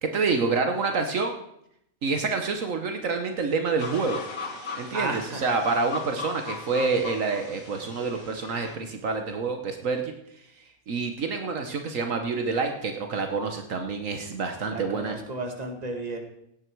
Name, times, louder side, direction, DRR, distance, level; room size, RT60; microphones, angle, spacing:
voice 1, 0.0-1.3 2.0-4.2 4.7-10.1 10.9-15.2, right 4 dB, 70° right, 5 dB, 1.5 m, -27 dB
sound 1, 3.8-8.8, left 4 dB, 75° left, 2.1 m, -38 dB
voice 2, 4.9-5.4 14.6-16.2, right 2 dB, 30° right, 3 dB, 1.9 m, -33 dB
17.0 x 10.0 x 4.6 m, 0.77 s
omnidirectional pair, 1.4 m